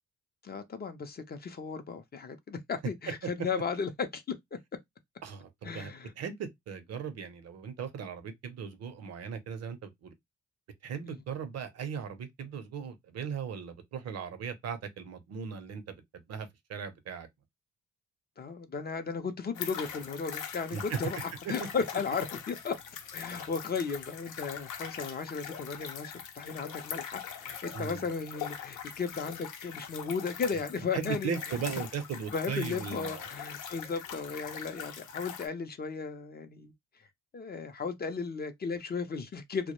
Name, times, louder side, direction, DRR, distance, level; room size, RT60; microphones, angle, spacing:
voice 1, 0.4-4.4 5.6-6.1 11.0-11.2 18.4-22.8 23.1-31.6 32.3-36.7 37.3-39.7, left 5 dB, 35° left, 0.5 m, -35 dB
voice 2, 5.2-10.1 10.8-17.3 20.7-21.0 21.5-21.7 27.7-28.0 30.9-33.2, right 6 dB, 55° right, 0.6 m, -38 dB
sound 1, 19.5-35.5, left 8 dB, 85° left, 0.6 m, -42 dB
2.2 x 2.0 x 2.9 m
cardioid pair, 90°, 30 cm